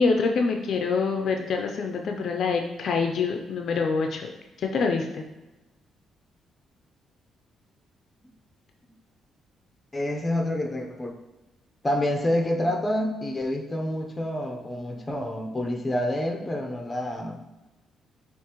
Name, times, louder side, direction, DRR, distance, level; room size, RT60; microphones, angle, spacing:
voice 1, 0.0-4.3 4.6-5.2, left 4 dB, 60° left, 3 dB, 0.4 m, -25 dB
voice 2, 9.9-11.1 11.8-17.5, left 1 dB, 20° left, 3 dB, 0.7 m, -28 dB
7.2 x 2.5 x 3.0 m, 1.0 s
cardioid pair, 90°, 0 cm